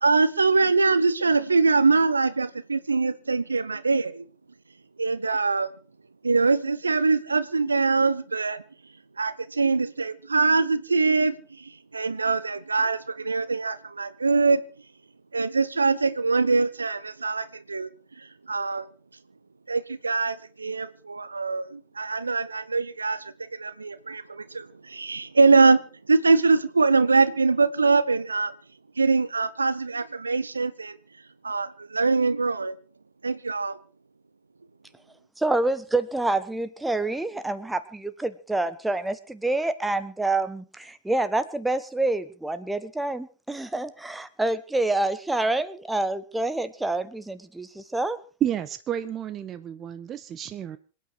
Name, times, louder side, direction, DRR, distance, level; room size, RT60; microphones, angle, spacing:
voice 1, 0.0-4.3 5.0-5.7 6.2-8.6 9.2-14.6 15.3-17.9 18.5-18.9 19.7-25.8 26.1-28.5 29.0-31.0 31.4-32.8 33.2-33.8, right 4 dB, 80° right, 16 dB, 0.8 m, -23 dB
voice 2, 35.4-48.2, right 2 dB, 5° right, 12 dB, 1.2 m, -27 dB
voice 3, 48.4-50.8, right 10 dB, 30° right, 12 dB, 0.8 m, -30 dB
26.5 x 9.3 x 4.7 m, 0.36 s
figure-of-eight pair, 90°, 0 cm